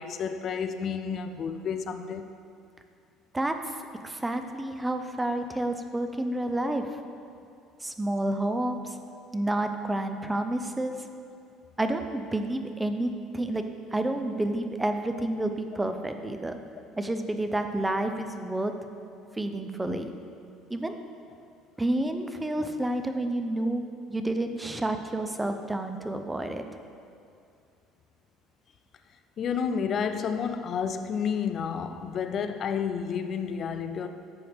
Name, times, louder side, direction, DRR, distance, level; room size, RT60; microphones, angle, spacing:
voice 1, 0.0-2.3 29.4-34.1, left 6 dB, 40° left, 0.4 m, -30 dB
voice 2, 3.3-3.7 4.0-6.9 7.8-8.9 9.3-11.0 11.8-16.6 17.0-18.7 19.4-20.1 20.7-21.0 21.8-23.8 24.1-26.7, right 1 dB, 10° right, 0.6 m, -29 dB
11.5 x 7.6 x 3.5 m
cardioid pair, 130°, 0 cm